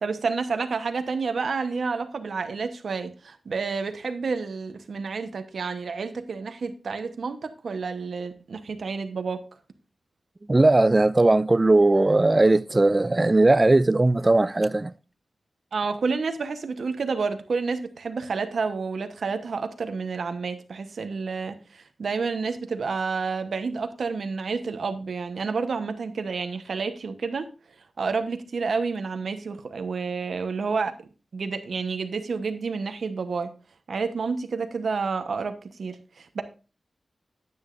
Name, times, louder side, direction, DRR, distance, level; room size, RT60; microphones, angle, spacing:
voice 1, 0.0-9.4 15.7-27.5 28.0-30.9 31.3-33.5 33.9-36.4, right 4 dB, 65° right, 1.0 m, -29 dB
voice 2, 10.5-14.9, right 2 dB, 20° right, 0.3 m, -19 dB
9.8 x 9.4 x 2.5 m
wide cardioid pair, 150°, 0 cm